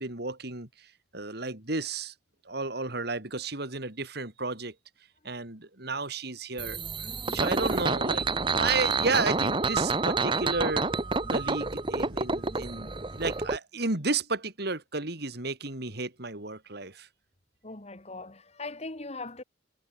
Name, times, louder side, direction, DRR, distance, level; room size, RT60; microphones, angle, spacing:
voice 1, 0.0-2.1 2.4-4.7 5.2-6.8 7.3-8.3 8.5-10.9 11.3-17.1, right 3 dB, 60° right, 3.4 m, -32 dB
sound 1, 6.6-13.6, right 3 dB, 25° right, 1.4 m, -28 dB
voice 2, 17.6-19.4, left 3 dB, 35° left, 2.1 m, -40 dB
head